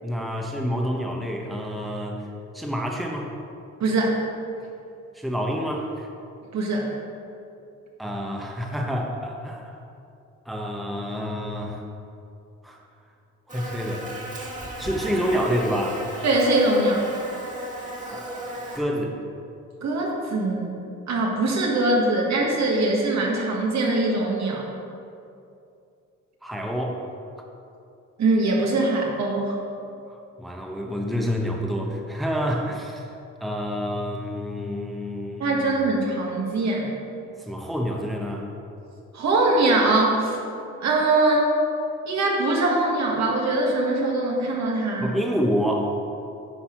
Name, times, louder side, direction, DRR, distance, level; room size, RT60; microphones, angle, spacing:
voice 1, 0.0-2.3 2.5-3.3 5.1-6.1 8.0-9.8 10.5-11.8 12.6-12.8 13.5-14.1 14.8-16.0 18.1-19.2 26.4-27.0 30.1-33.1 33.4-35.7 37.5-38.5 45.0-46.0, equal, ahead, 0 dB, 0.9 m, -28 dB
voice 2, 3.8-4.2 6.5-6.9 16.2-17.1 19.8-20.7 21.1-24.7 28.2-29.6 35.4-36.9 39.1-40.4 40.8-41.5 42.1-45.2, right 2 dB, 65° right, -1 dB, 1.7 m, -22 dB
Buzz, 13.5-18.8, right 1 dB, 25° right, 2.0 m, -35 dB
10.0 x 4.2 x 5.9 m, 2.6 s
cardioid pair, 90°, 30 cm